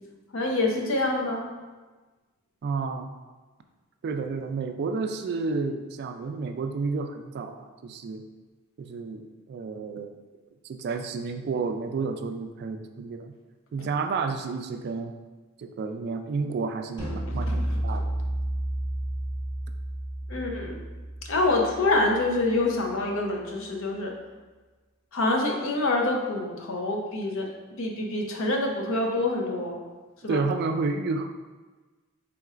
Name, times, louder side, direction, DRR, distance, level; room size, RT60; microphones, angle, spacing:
voice 1, 0.3-1.4 13.8-13.9 17.5-17.8 20.3-20.8 21.3-24.1 25.1-29.8 30.2-30.4, left 2 dB, 65° left, 1 dB, 0.6 m, -26 dB
voice 2, 2.6-3.2 4.0-8.2 8.8-10.1 10.6-13.3 13.7-15.1 15.6-18.1 30.3-31.3, right 4 dB, 50° right, 7 dB, 0.3 m, -31 dB
sound 1, 17.0-22.4, right 1 dB, 20° left, 1.1 m, -31 dB
4.3 x 3.7 x 2.4 m, 1.3 s
head